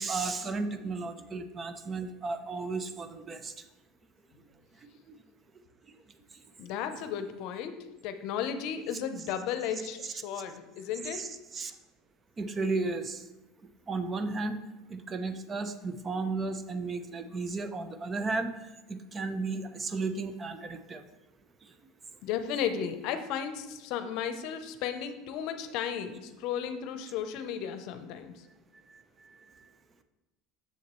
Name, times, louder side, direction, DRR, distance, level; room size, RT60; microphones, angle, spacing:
voice 1, 0.0-3.5 5.1-5.2 10.0-10.1 11.1-11.7 12.4-13.2 13.9-14.6 14.9-18.5 18.9-21.0, right 3 dB, 30° right, 9 dB, 0.6 m, -34 dB
voice 2, 6.6-11.3 22.2-28.5, left 8 dB, 65° left, 9 dB, 0.7 m, -34 dB
7.2 x 7.0 x 3.1 m, 1.0 s
supercardioid pair, 105°, 0 cm